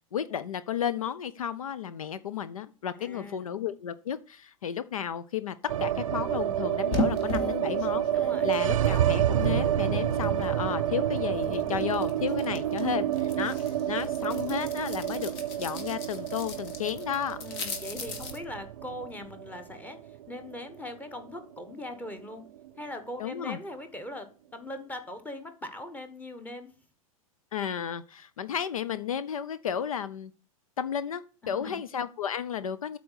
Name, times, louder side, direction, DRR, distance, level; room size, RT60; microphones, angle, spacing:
voice 1, 0.1-5.5 5.8-13.6 13.9-15.3 15.6-17.4 23.2-23.6 27.5-30.3 30.8-33.0, left 8 dB, 70° left, 14 dB, 0.5 m, -33 dB
voice 2, 3.0-3.5 8.1-8.4 17.4-22.4 22.8-26.7 31.4-31.8, left 1 dB, 10° left, 8 dB, 1.3 m, -41 dB
sound 1, 5.7-21.8 22.0-22.1 22.4-23.1, right 11 dB, 65° right, 0.6 m, -29 dB
sound 2, 6.9-10.8 11.2-18.4, left 3 dB, 45° left, 1.9 m, -38 dB
8.6 x 4.1 x 6.4 m, 0.38 s
figure-of-eight pair, 100°, 19 cm